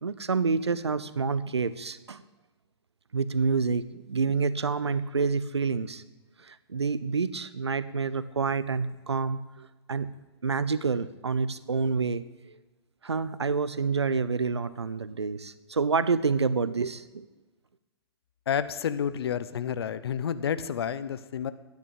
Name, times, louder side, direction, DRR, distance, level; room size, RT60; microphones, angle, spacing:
voice 1, 0.0-2.2 3.1-6.0 6.4-10.1 10.4-12.6 13.0-17.3, right 4 dB, 90° right, 15 dB, 0.8 m, -28 dB
voice 2, 18.5-21.5, left 8 dB, 70° left, 15 dB, 0.9 m, -30 dB
12.5 x 9.7 x 8.3 m, 1.2 s
hypercardioid pair, 115°, 14 cm